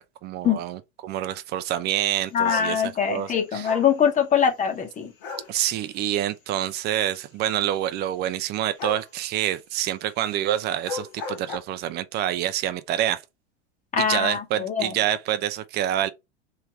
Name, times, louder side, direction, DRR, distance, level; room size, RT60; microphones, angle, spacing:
voice 1, 0.2-3.7 5.5-13.2 14.0-16.1, right 12 dB, 30° right, 0.6 m, -27 dB
voice 2, 2.3-5.1 13.9-14.9, left 8 dB, 25° left, 1.2 m, -23 dB
sound 1, 2.4-2.7 3.6-3.9 5.2-5.5 8.8-9.1 10.7-11.6, left 4 dB, 55° left, 1.5 m, -34 dB
3.4 x 3.3 x 4.4 m
figure-of-eight pair, 85°, 32 cm